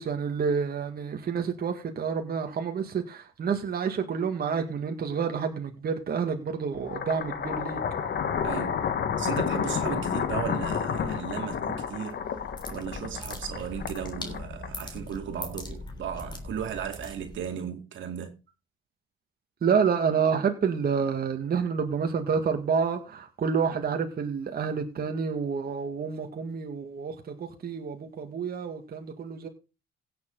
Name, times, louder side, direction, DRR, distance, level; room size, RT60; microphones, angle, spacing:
voice 1, 0.0-7.8 19.6-29.5, right 6 dB, 50° right, 2.0 m, -29 dB
sound 1, 6.8-15.0, left 7 dB, 60° left, 1.7 m, -30 dB
voice 2, 8.4-8.8 9.2-12.2 12.7-18.3, right 8 dB, 75° right, 2.3 m, -36 dB
sound 2, 12.1-17.5, left 2 dB, 20° left, 3.5 m, -41 dB
16.5 x 7.0 x 3.9 m
cardioid pair, 90°, 20 cm